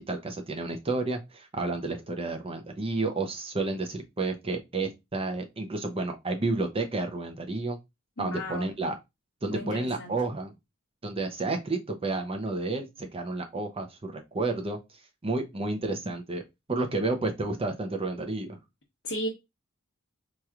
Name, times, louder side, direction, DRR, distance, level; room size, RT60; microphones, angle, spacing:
voice 1, 0.1-7.8 8.2-9.0 9.4-10.5 11.0-14.8 15.2-16.4 16.7-18.6, right 3 dB, 25° right, 0.6 m, -31 dB
voice 2, 8.2-8.7 9.5-10.1 19.0-19.3, equal, 60° left, 1.0 m, -34 dB
4.5 x 2.9 x 2.4 m
head